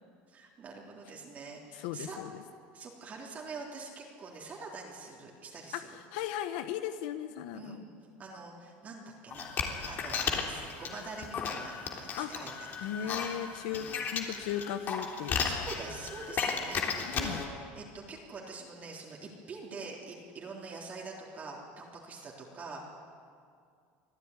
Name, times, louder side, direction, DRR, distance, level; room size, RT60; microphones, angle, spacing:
voice 1, 0.3-2.2 2.7-5.9 7.5-7.8 8.2-9.5 9.9-12.7 13.0-13.3 13.7-14.0 15.3-22.9, right 4 dB, 30° right, -2 dB, 3.6 m, -45 dB
voice 2, 1.7-2.3 5.7-7.9 12.2-12.3 12.8-13.9 14.1-15.6 17.1-17.4, left 10 dB, 80° left, 9 dB, 1.1 m, -37 dB
sound 1, 9.3-17.5, left 6 dB, 40° left, 3.4 m, -35 dB
25.5 x 15.0 x 9.9 m, 2.3 s
supercardioid pair, 130°, 5 cm